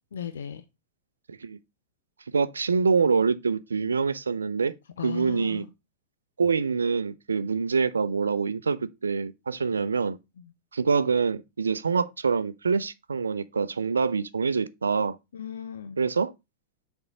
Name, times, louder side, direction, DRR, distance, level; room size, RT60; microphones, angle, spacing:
voice 1, 0.1-0.6 5.0-5.7 10.4-10.5 15.3-16.0, left 7 dB, 65° left, 0.6 m, -36 dB
voice 2, 2.3-4.7 5.0-5.6 6.4-10.2 10.7-15.2 16.0-16.3, right 5 dB, 75° right, 0.6 m, -25 dB
6.7 x 4.5 x 5.1 m
figure-of-eight pair, 90°, 0 cm